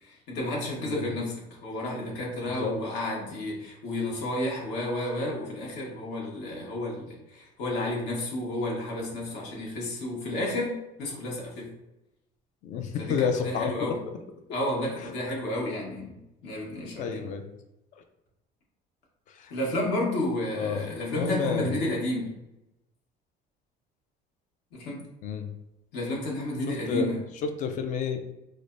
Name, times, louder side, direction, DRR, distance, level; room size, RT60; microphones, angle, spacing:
voice 1, 0.0-11.7 13.0-14.0 14.5-17.1 19.5-22.3 24.7-25.0 25.9-27.2, left 1 dB, 70° left, -3 dB, 1.3 m, -31 dB
voice 2, 0.8-1.1 2.6-2.7 12.6-13.7 16.9-17.4 19.4-19.5 20.5-21.7 25.2-25.5 26.7-27.1 27.4-28.2, left 6 dB, 45° left, 7 dB, 0.4 m, -30 dB
4.9 x 2.0 x 2.5 m, 0.90 s
cardioid pair, 165°, 18 cm